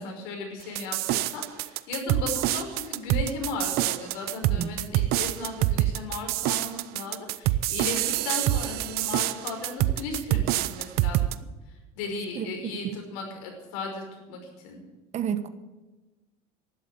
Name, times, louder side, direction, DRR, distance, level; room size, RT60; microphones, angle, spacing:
voice 1, 0.0-11.3 11.9-14.8, left 3 dB, 75° left, 2 dB, 5.6 m, -36 dB
sound 1, 0.7-11.3, right 15 dB, 60° right, 0.7 m, -26 dB
voice 2, 15.1-15.5, right 8 dB, 40° right, 12 dB, 1.4 m, -29 dB
12.0 x 11.5 x 9.6 m, 1.1 s
supercardioid pair, 115°, 18 cm